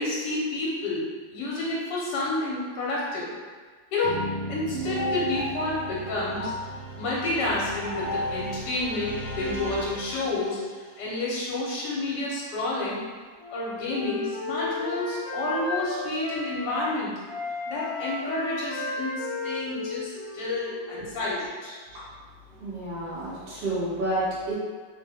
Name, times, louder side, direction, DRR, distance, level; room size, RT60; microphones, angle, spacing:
voice 1, 0.0-3.3 3.9-6.6 7.0-10.6 11.0-13.0 13.5-17.2 17.7-21.8, left 2 dB, 75° left, -5 dB, 1.3 m, -30 dB
sound 1, 4.0-10.8, equal, 45° right, 0.9 m, -34 dB
Wind instrument woodwind instrument, 13.4-16.9 17.3-21.0, left 3 dB, 55° left, 0.8 m, -34 dB
voice 2, 20.9-21.3 21.9-22.0 22.6-24.5, right 1 dB, 75° right, -9 dB, 1.5 m, -30 dB
3.5 x 2.1 x 3.4 m, 1.5 s
omnidirectional pair, 1.9 m